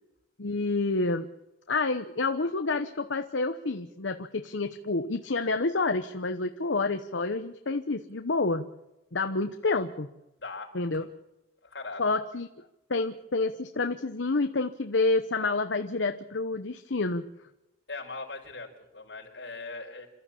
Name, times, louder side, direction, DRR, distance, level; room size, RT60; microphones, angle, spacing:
voice 1, 0.4-1.3 1.7-8.6 9.1-10.1 10.7-11.0 12.0-12.5 12.9-17.3, left 3 dB, 85° left, 8 dB, 1.0 m, -28 dB
voice 2, 10.4-10.7 11.6-12.0 17.9-20.1, left 3 dB, 65° left, 0 dB, 5.2 m, -40 dB
27.5 x 13.5 x 8.6 m, 0.95 s
head